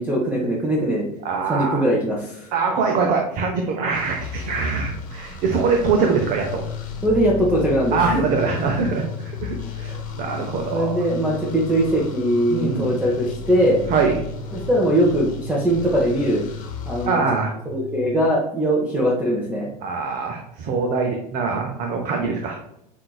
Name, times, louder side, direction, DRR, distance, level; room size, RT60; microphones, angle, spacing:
voice 1, 0.0-1.1 1.5-2.5 7.0-8.0 9.9-10.0 10.7-13.8 14.5-16.4 16.9-17.2 17.7-19.7, equal, 10° right, -3 dB, 0.8 m, -21 dB
voice 2, 1.2-1.8 2.5-6.6 7.9-11.0 12.5-12.9 13.9-14.2 17.1-17.5 19.8-22.6, right 4 dB, 40° right, 2 dB, 0.7 m, -23 dB
sound 1, 3.9-17.1, left 4 dB, 40° left, 1.1 m, -36 dB
sound 2, 6.4-18.2, left 6 dB, 75° left, 0.5 m, -36 dB
5.6 x 2.6 x 2.3 m, 0.78 s
hypercardioid pair, 85°, 20 cm